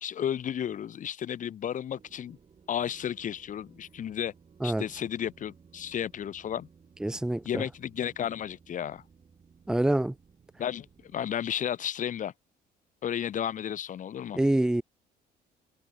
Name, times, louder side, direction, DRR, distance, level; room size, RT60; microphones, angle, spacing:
voice 1, 0.0-2.4 2.7-4.3 4.6-6.7 7.4-9.0 10.6-12.3 13.0-14.4, left 9 dB, 50° left, 1.8 m, -33 dB
sound 1, 1.9-11.2, right 6 dB, 35° right, 7.7 m, -58 dB
voice 2, 7.0-7.6 9.7-10.1 14.3-14.8, right 1 dB, 5° right, 0.6 m, -26 dB
cardioid pair, 110°, 17 cm